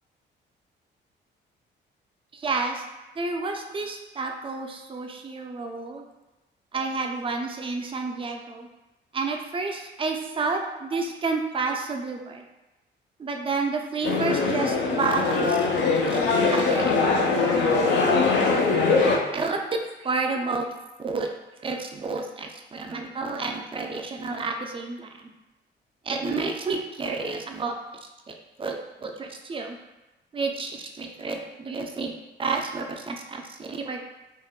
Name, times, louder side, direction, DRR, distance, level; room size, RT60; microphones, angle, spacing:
voice 1, 2.3-2.8 3.2-6.0 6.7-8.7 9.1-12.4 13.2-15.6 16.1-16.2 16.5-18.0 19.3-19.6 20.0-20.7 21.0-21.3 21.6-25.3 26.1-27.7 28.6-29.8 30.3-32.1 32.4-34.0, right 4 dB, 25° right, 3 dB, 0.4 m, -30 dB
sound 1, 14.0-19.2, left 4 dB, 65° left, 0.5 m, -22 dB
3.5 x 2.1 x 2.3 m, 1.0 s
cardioid pair, 90°, 20 cm